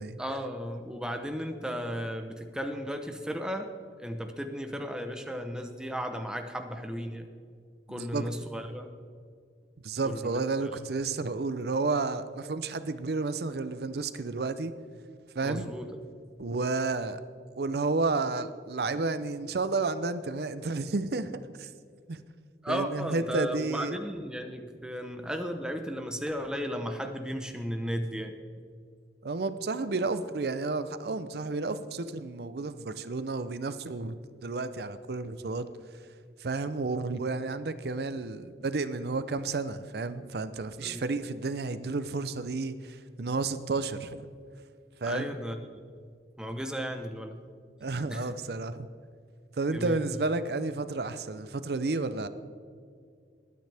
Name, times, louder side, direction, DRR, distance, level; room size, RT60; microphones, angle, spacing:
voice 1, 0.2-3.7 4.0-7.2 7.9-8.9 10.0-10.7 15.4-15.9 22.6-28.4 40.8-41.0 45.0-45.6 46.4-47.4 48.1-48.3 49.7-50.0, equal, 5° right, 5 dB, 0.8 m, -35 dB
voice 2, 7.9-8.3 9.8-14.7 15.3-15.7 16.4-17.2 17.6-21.7 22.1-22.2 22.7-24.0 29.2-34.2 34.4-35.7 36.4-44.3 45.0-45.4 47.8-48.9 49.6-52.3, right 3 dB, 60° right, 12 dB, 0.6 m, -31 dB
20.5 x 9.3 x 3.4 m, 2.1 s
head